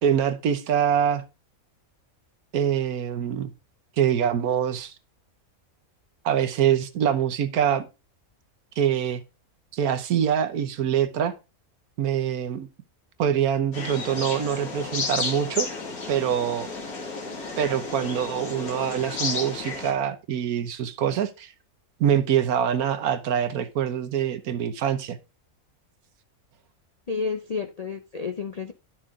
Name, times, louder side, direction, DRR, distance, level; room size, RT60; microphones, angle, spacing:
voice 1, 0.0-1.2 2.5-3.5 4.0-4.9 6.2-7.9 8.8-9.2 9.7-11.3 12.0-12.7 13.2-15.7 16.1-16.7 17.6-21.5 22.0-25.2, right 9 dB, 80° right, 1.4 m, -24 dB
sound 1, 13.7-19.9, left 3 dB, 85° left, 2.5 m, -32 dB
voice 2, 27.1-28.7, left 5 dB, 50° left, 0.4 m, -30 dB
11.5 x 6.1 x 3.7 m
omnidirectional pair, 1.5 m